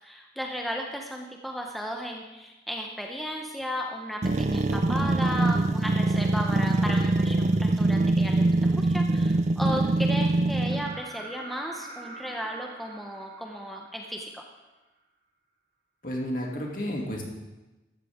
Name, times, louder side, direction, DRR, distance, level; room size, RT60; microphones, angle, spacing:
voice 1, 0.0-14.4, equal, ahead, 0 dB, 0.8 m, -35 dB
sound 1, 4.2-11.0, right 2 dB, 40° right, 0.5 m, -24 dB
sound 2, 10.7-14.5 16.4-16.5, right 2 dB, 80° right, 2.2 m, -45 dB
voice 2, 16.0-17.2, equal, 50° left, -1 dB, 2.5 m, -31 dB
15.0 x 13.0 x 3.7 m, 1.1 s
head